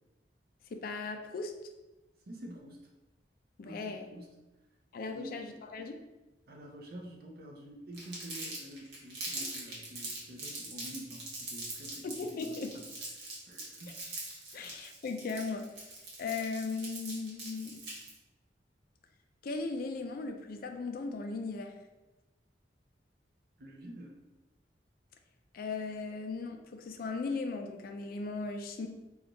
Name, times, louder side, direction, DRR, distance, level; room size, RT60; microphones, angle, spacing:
voice 1, 0.7-1.5 3.6-4.1 4.9-6.0 9.4-9.5 12.0-12.8 14.5-15.7 16.2-17.9 19.4-21.7 25.5-28.9, left 4 dB, 55° left, 6 dB, 0.4 m, -37 dB
voice 2, 2.3-2.8 3.6-4.4 5.1-5.4 6.5-12.9 13.2-14.0 14.5-14.8 23.6-24.2, right 1 dB, 60° right, 1 dB, 0.6 m, -48 dB
Crumpling crinkling, 7.9-18.2, right 2 dB, 85° right, 1.1 m, -42 dB
3.4 x 2.3 x 3.8 m, 1.1 s
head